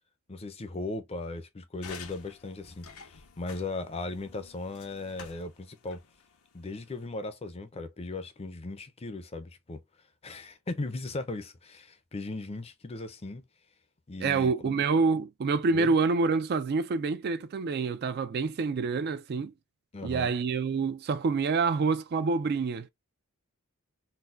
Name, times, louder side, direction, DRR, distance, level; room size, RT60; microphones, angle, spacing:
voice 1, 0.3-6.0 6.5-9.8 10.2-13.4 14.1-14.9 15.7-15.9 19.9-20.3, left 2 dB, 25° left, 0.5 m, -38 dB
sound 1, 1.8-7.1, left 6 dB, 75° left, 0.6 m, -50 dB
voice 2, 14.2-19.5 20.0-22.9, right 4 dB, 45° right, 0.3 m, -27 dB
4.0 x 2.2 x 2.4 m
head